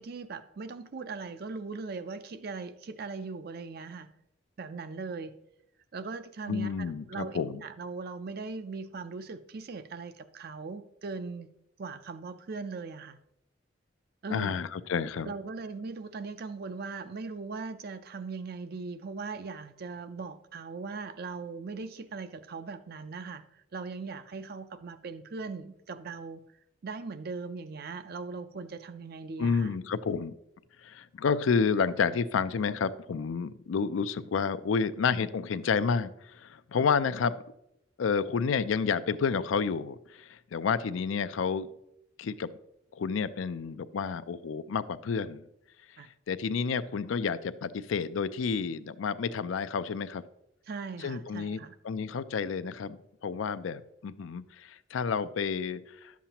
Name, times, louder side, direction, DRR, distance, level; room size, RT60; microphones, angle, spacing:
voice 1, 0.0-4.1 4.6-5.3 5.9-6.7 7.1-11.5 11.8-13.2 14.2-14.6 15.2-26.4 26.8-29.8 46.0-46.1 50.7-51.7, right 4 dB, 55° right, 0.5 m, -39 dB
voice 2, 6.5-7.6 14.3-15.3 29.4-30.3 30.8-37.4 38.0-41.7 42.2-42.5 42.9-45.4 46.3-50.2 51.0-51.6 51.8-56.1, left 5 dB, 85° left, 0.4 m, -30 dB
11.0 x 7.2 x 2.9 m
head